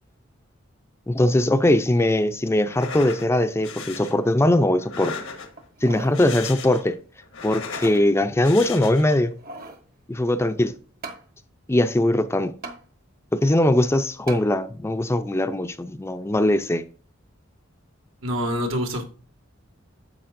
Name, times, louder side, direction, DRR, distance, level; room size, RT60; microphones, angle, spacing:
voice 1, 1.1-5.1 5.8-7.0 7.4-9.3 10.1-10.7 11.7-12.5 13.3-16.8, left 1 dB, 10° left, 0.4 m, -21 dB
sound 1, 2.6-3.3 3.6-4.1 4.8-5.7 6.0-6.9 7.2-8.0 8.4-9.2, left 5 dB, 90° left, 1.3 m, -36 dB
sound 2, 5.6-6.2 6.7-6.8 7.5-8.1 9.1-9.8 11.0-11.3 12.6-12.8 14.3-14.5 15.1-15.2, right 3 dB, 45° right, 1.1 m, -39 dB
voice 2, 18.2-19.0, equal, 85° right, 1.9 m, -25 dB
10.0 x 7.2 x 2.6 m
head